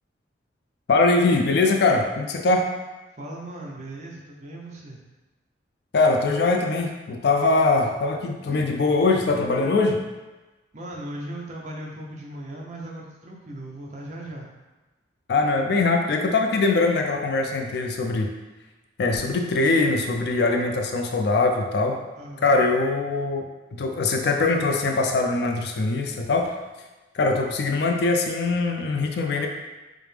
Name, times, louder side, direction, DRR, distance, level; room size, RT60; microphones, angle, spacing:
voice 1, 0.9-2.7 5.9-10.0 15.3-18.3 19.0-22.0 22.4-23.4 23.7-26.5 27.1-29.5, left 3 dB, 60° left, 3 dB, 0.4 m, -22 dB
voice 2, 3.2-5.0 10.7-14.5 22.1-22.6, right 1 dB, 40° right, -2 dB, 0.6 m, -37 dB
4.9 x 2.0 x 3.2 m, 1.2 s
head